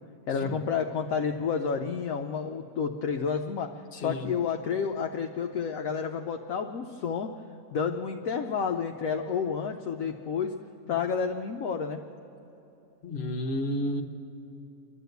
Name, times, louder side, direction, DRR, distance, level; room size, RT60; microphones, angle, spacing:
voice 1, 0.3-3.7 4.0-7.3 7.7-10.5 10.9-12.0, left 6 dB, 65° left, 4 dB, 1.1 m, -30 dB
voice 2, 3.9-4.3 13.0-14.0, left 1 dB, 45° left, 3 dB, 1.3 m, -31 dB
28.5 x 11.5 x 8.0 m, 3.0 s
omnidirectional pair, 1.7 m